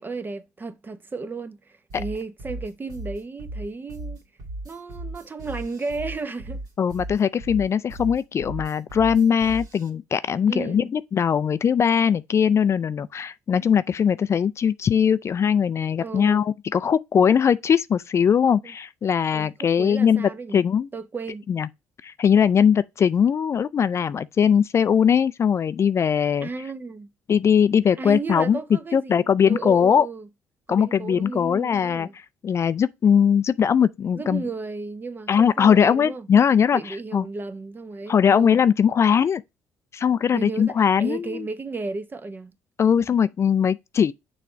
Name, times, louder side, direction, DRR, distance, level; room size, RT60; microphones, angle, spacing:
voice 1, 0.0-4.2 4.6-6.6 10.5-10.9 16.0-16.4 18.5-18.7 19.3-20.6 20.9-21.5 26.4-27.1 28.0-30.3 30.7-32.1 34.1-36.3 36.7-38.6 40.3-42.5, right 4 dB, 30° right, 0.8 m, -34 dB
sound 1, 1.9-9.9, right 1 dB, 60° right, 2.2 m, -36 dB
voice 2, 6.8-20.9 21.5-21.7 22.0-26.5 27.3-28.6 28.9-30.1 30.7-34.4 35.3-36.8 37.1-37.2 38.1-39.4 39.9-41.5 42.8-44.1, left 7 dB, 40° left, 0.4 m, -20 dB
6.7 x 3.2 x 4.6 m
hypercardioid pair, 55°, 7 cm